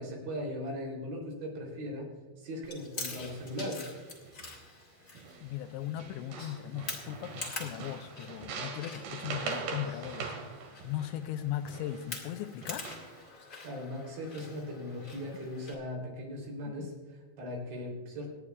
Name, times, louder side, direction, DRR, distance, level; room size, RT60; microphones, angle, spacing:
voice 1, 0.0-2.1 2.4-3.9 13.6-18.3, left 1 dB, 90° right, -1 dB, 5.8 m, -39 dB
Chewing mastication, 2.6-15.7, left 3 dB, 45° left, 1.3 m, -46 dB
sound 1, 3.2-3.6 4.0-4.6 5.2-5.7 6.0-12.1 12.6-13.2, right 5 dB, 70° right, 3.3 m, -42 dB
voice 2, 5.4-10.3 10.8-12.9 16.6-16.9, left 12 dB, 85° left, 9 dB, 2.8 m, -38 dB
27.0 x 10.0 x 2.4 m, 1.3 s
omnidirectional pair, 5.1 m